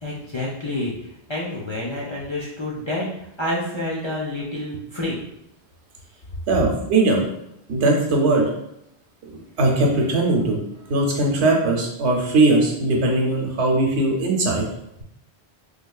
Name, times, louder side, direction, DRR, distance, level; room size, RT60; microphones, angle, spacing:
voice 1, 0.0-5.2 10.9-11.2, left 1 dB, 40° left, -5 dB, 0.4 m, -29 dB
voice 2, 6.5-7.3 7.7-8.5 9.3-10.6 10.9-14.7, right 2 dB, 85° right, 0 dB, 1.0 m, -20 dB
3.3 x 3.1 x 2.3 m, 0.79 s
omnidirectional pair, 1.1 m